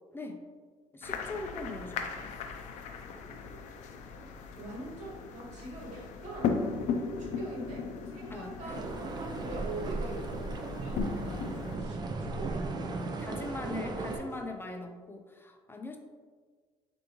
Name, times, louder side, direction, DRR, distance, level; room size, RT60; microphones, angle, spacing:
voice 1, 0.9-2.3 8.3-8.8 13.0-16.0, left 2 dB, 15° left, 4 dB, 0.4 m, -41 dB
sound 1, 1.0-11.8, left 5 dB, 70° left, 0.5 m, -37 dB
voice 2, 3.3-3.6 4.1-4.3 4.6-6.6 7.2-12.6 13.2-14.3 14.6-14.8, right 2 dB, 75° right, -2 dB, 1.4 m, -43 dB
sound 2, 8.7-14.2, right 3 dB, 35° right, 0.6 m, -36 dB
6.6 x 2.6 x 3.0 m, 1.5 s
cardioid pair, 95°, 13 cm